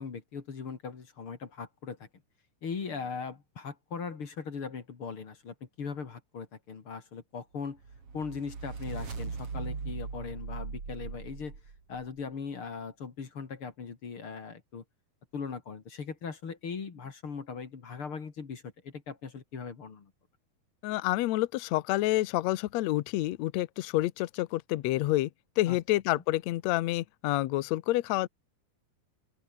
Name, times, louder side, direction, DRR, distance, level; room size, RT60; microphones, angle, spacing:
voice 1, 0.0-2.1 2.6-7.8 8.1-11.5 11.9-14.8 15.3-20.1 25.7-25.8, left 5 dB, 40° left, 3.0 m, -39 dB
sound 1, 7.8-12.1, right 4 dB, 40° right, 4.8 m, -39 dB
voice 2, 20.8-25.3 25.6-28.3, left 17 dB, 80° left, 1.6 m, -28 dB
open air
omnidirectional pair, 4.2 m